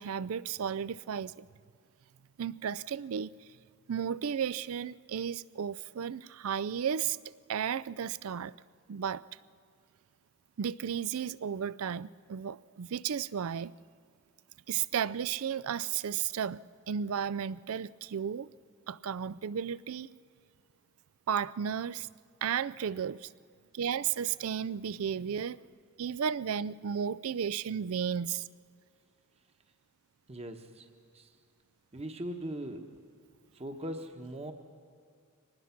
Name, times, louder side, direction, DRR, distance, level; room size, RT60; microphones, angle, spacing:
voice 1, 0.0-1.4 2.4-3.3 3.9-7.2 7.5-8.5 8.9-9.2 10.6-13.7 14.7-16.6 16.9-18.5 18.9-20.1 21.3-22.1 22.4-23.3 23.7-25.6 26.0-28.4, right 8 dB, 65° right, 18 dB, 0.4 m, -33 dB
voice 2, 30.3-30.9 31.1-31.3 31.9-32.9 33.5-34.5, right 1 dB, 30° right, 5 dB, 1.1 m, -40 dB
24.0 x 19.5 x 5.9 m, 2.3 s
head